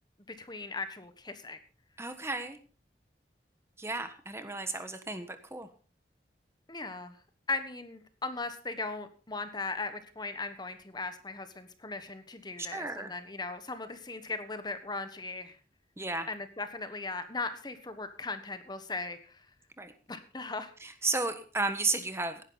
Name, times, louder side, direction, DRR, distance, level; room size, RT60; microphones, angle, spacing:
voice 1, 0.3-1.6 6.7-7.2 7.5-15.6 16.3-19.4 20.1-20.7, left 3 dB, 25° left, 10 dB, 1.3 m, -38 dB
voice 2, 2.0-2.6 3.8-5.7 12.7-13.1 16.0-16.3 19.8-19.9 20.8-22.4, right 3 dB, 15° right, 9 dB, 1.3 m, -33 dB
17.5 x 10.5 x 4.0 m, 0.38 s
head